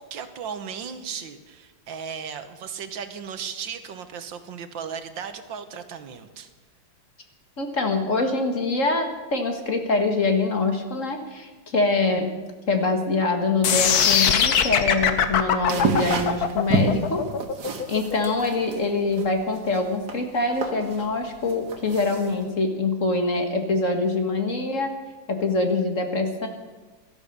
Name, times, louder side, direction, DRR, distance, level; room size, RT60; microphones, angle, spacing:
voice 1, 0.0-6.5, right 7 dB, 75° right, 9 dB, 1.8 m, -36 dB
voice 2, 7.6-12.3 12.7-17.2 17.9-24.9 25.3-26.5, left 3 dB, 40° left, 5 dB, 1.9 m, -24 dB
sound 1, 13.6-19.7, left 7 dB, 60° left, 1.4 m, -21 dB
sound 2, 15.7-22.5, right 5 dB, 60° right, 2.1 m, -30 dB
17.0 x 13.0 x 6.7 m, 1.3 s
omnidirectional pair, 2.1 m